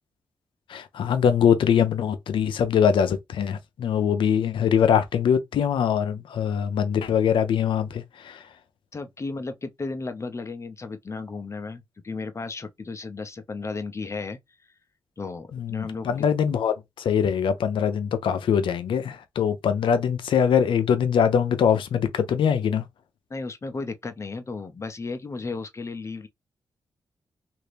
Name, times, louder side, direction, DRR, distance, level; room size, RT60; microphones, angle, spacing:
voice 1, 0.7-8.4 15.5-22.8, left 8 dB, 80° left, 0.5 m, -23 dB
voice 2, 8.9-14.4 15.2-16.3 23.3-26.3, left 3 dB, 35° left, 0.6 m, -34 dB
2.8 x 2.6 x 3.3 m
cardioid pair, 55°, 9 cm